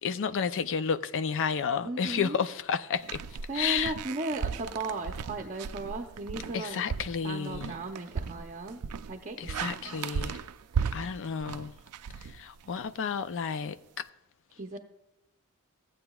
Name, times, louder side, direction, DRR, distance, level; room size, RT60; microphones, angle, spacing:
voice 1, 0.0-3.2 3.5-3.9 6.5-7.7 9.4-10.4 10.9-11.7 12.2-14.1, left 6 dB, 60° left, 0.5 m, -31 dB
voice 2, 1.8-2.4 3.5-6.8 7.2-10.0 14.6-14.8, right 2 dB, 35° right, 0.6 m, -36 dB
sound 1, 3.0-12.9, right 6 dB, 80° right, 0.4 m, -36 dB
16.0 x 8.8 x 2.3 m
head